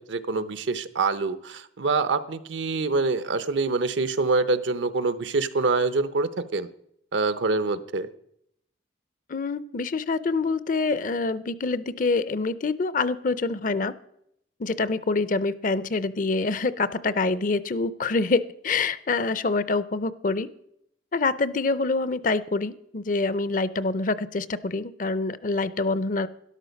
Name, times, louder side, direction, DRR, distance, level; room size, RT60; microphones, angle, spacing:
voice 1, 0.1-6.7 7.1-8.1, right 3 dB, 75° right, 13 dB, 0.7 m, -25 dB
voice 2, 9.3-13.9 14.6-20.5 21.1-26.3, left 3 dB, 45° left, 16 dB, 0.5 m, -26 dB
12.5 x 11.5 x 5.2 m, 0.74 s
head